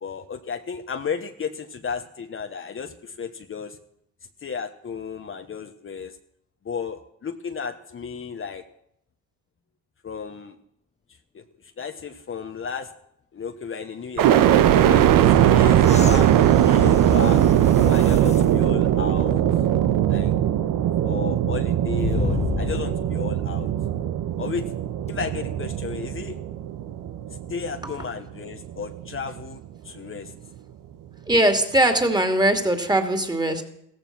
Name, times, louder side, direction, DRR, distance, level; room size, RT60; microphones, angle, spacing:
voice 1, 0.0-3.8 4.4-6.2 6.6-8.6 10.0-10.5 11.3-11.4 11.8-12.9 13.3-14.4 14.8-17.4 17.7-19.7 20.1-20.3 21.0-23.7 24.4-24.7 25.1-26.4 27.5-29.6 29.8-30.3, left 6 dB, 40° left, 6 dB, 1.2 m, -33 dB
sound 1, 14.2-28.2 28.7-29.4, right 11 dB, 75° right, 1.1 m, -20 dB
sound 2, 15.8-18.6 19.2-19.3 22.0-23.2 25.1-25.2, left 5 dB, 20° left, 0.6 m, -32 dB
voice 2, 31.3-33.6, right 1 dB, 10° right, 7 dB, 2.6 m, -21 dB
16.0 x 14.5 x 6.1 m, 0.74 s
cardioid pair, 100°, 34 cm